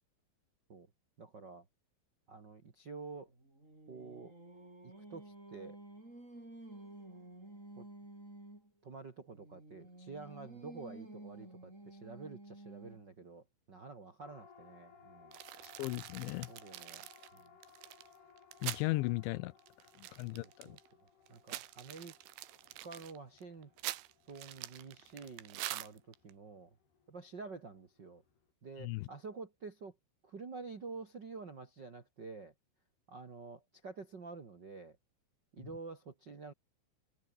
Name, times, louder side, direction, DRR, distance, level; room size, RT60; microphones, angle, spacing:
voice 1, 1.2-1.6 2.3-3.3 3.9-4.3 4.8-5.8 7.8-7.9 8.8-15.3 16.5-17.5 20.3-20.8 21.3-22.1 22.8-23.7 24.3-26.7 27.1-28.2 28.6-29.9 30.2-32.5 33.1-35.0 35.5-36.5, right 4 dB, 55° right, 1.2 m, -49 dB
Singing, 3.3-8.7 9.3-13.2, right 1 dB, 15° right, 7.3 m, -52 dB
Siren, 14.2-28.5, left 6 dB, 55° left, 6.2 m, -63 dB
sound 1, 15.3-18.9 19.2-19.3 19.6-20.9 21.3-26.3, right 15 dB, 80° right, 3.6 m, -45 dB
voice 2, 15.6-16.5 18.6-19.5 20.0-20.8 28.8-29.1, left 21 dB, 80° left, 2.8 m, -36 dB
omnidirectional pair, 5.6 m